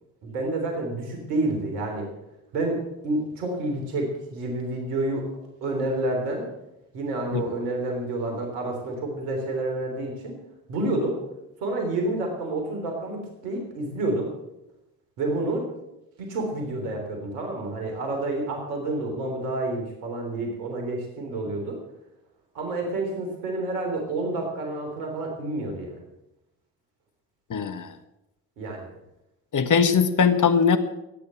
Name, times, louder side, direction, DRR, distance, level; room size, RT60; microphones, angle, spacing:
voice 1, 0.2-2.1 2.5-5.3 5.6-6.5 6.9-10.4 10.7-11.2 11.6-14.3 15.2-15.6 16.2-21.8 22.5-26.0 28.6-28.9, right 2 dB, 85° right, 2 dB, 3.7 m, -29 dB
voice 2, 27.5-27.9 29.5-30.8, left 6 dB, 40° left, 10 dB, 1.5 m, -20 dB
15.0 x 9.4 x 7.6 m, 0.91 s
hypercardioid pair, 45°, 46 cm